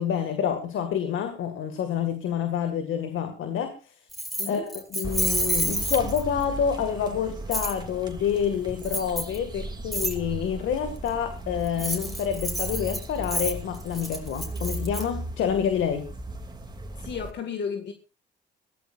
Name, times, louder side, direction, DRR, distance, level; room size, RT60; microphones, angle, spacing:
voice 1, 0.0-3.9 4.5-16.1, left 8 dB, 80° left, 7 dB, 2.1 m, -28 dB
Keys jangling, 4.1-6.4 7.5-7.7 8.8-9.4 9.9-10.1 11.6-15.0, right 1 dB, ahead, 4.7 m, -29 dB
voice 2, 4.4-4.7 17.0-17.9, left 6 dB, 60° left, 5 dB, 2.0 m, -33 dB
sound 1, 5.0-17.3, right 2 dB, 20° right, 2.8 m, -37 dB
21.0 x 16.5 x 2.6 m, 0.31 s
cardioid pair, 90°, 20 cm